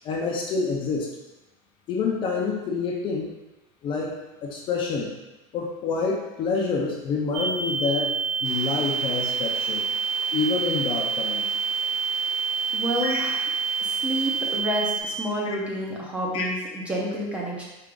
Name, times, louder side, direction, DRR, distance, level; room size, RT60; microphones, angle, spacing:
voice 1, 0.0-1.1 1.9-3.3 3.8-4.1 4.4-5.1 5.5-8.1 8.4-9.8 10.3-11.4 13.0-13.2 16.3-16.4, left 4 dB, 30° left, -1 dB, 0.5 m, -27 dB
sound 1, 7.3-15.0, right 5 dB, 85° right, 0.7 m, -27 dB
sound 2, 8.4-14.6, right 2 dB, 45° right, 0.7 m, -43 dB
voice 2, 12.7-13.4 13.8-17.6, equal, 10° right, -4 dB, 0.7 m, -29 dB
4.5 x 2.5 x 3.7 m, 1.0 s
supercardioid pair, 155°, 16 cm